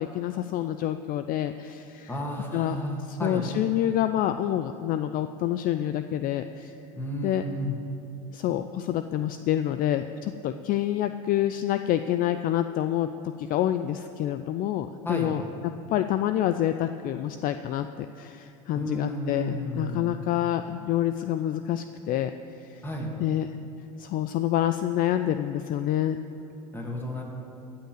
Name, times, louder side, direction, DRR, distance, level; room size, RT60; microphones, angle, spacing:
voice 1, 0.0-2.2 2.5-6.7 7.2-7.4 8.3-13.1 13.4-22.3 22.6-22.8 23.2-23.5 24.0-26.2, left 12 dB, 45° left, 10 dB, 0.5 m, -27 dB
voice 2, 2.1-3.4 7.0-7.8 15.0-15.4 18.7-20.1 22.8-23.1 26.7-27.2, equal, 10° left, 0 dB, 2.6 m, -32 dB
15.5 x 5.8 x 8.8 m, 2.9 s
hypercardioid pair, 90°, 19 cm